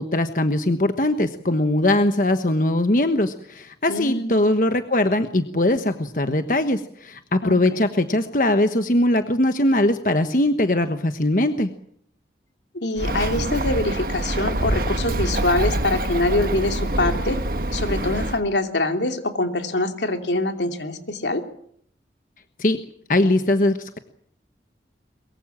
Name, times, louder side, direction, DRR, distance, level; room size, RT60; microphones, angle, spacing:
voice 1, 0.0-11.7 22.6-22.8 23.1-24.0, left 1 dB, 45° left, 8 dB, 1.2 m, -21 dB
voice 2, 3.9-4.4 7.4-7.8 12.7-17.4 17.7-21.4, left 2 dB, 85° left, 5 dB, 2.9 m, -24 dB
Bird, 13.0-18.4, right 1 dB, 55° right, 1.5 m, -25 dB
23.0 x 23.0 x 7.4 m, 0.67 s
head